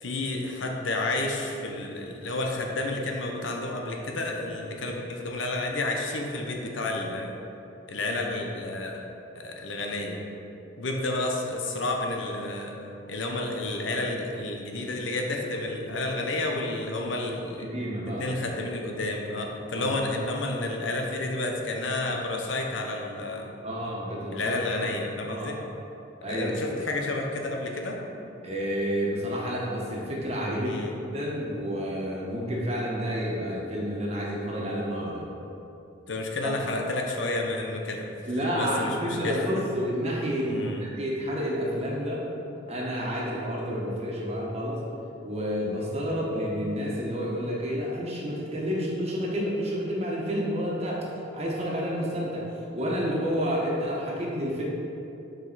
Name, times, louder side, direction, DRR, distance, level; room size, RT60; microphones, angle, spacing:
voice 1, 0.0-7.4 7.9-9.0 9.3-10.2 10.8-12.8 13.1-17.7 18.1-23.5 24.3-25.6 26.2-28.0 30.7-31.0 36.1-38.1 38.4-39.5 40.4-40.8, left 2 dB, 90° left, 1 dB, 0.9 m, -30 dB
voice 2, 17.6-18.2 19.7-20.0 23.6-25.7 26.2-26.8 28.4-30.8 31.1-35.3 36.4-36.6 38.3-42.2 42.7-44.8 45.2-51.1 51.3-54.6, equal, 35° right, -4 dB, 1.4 m, -30 dB
7.6 x 5.3 x 4.1 m, 2.8 s
head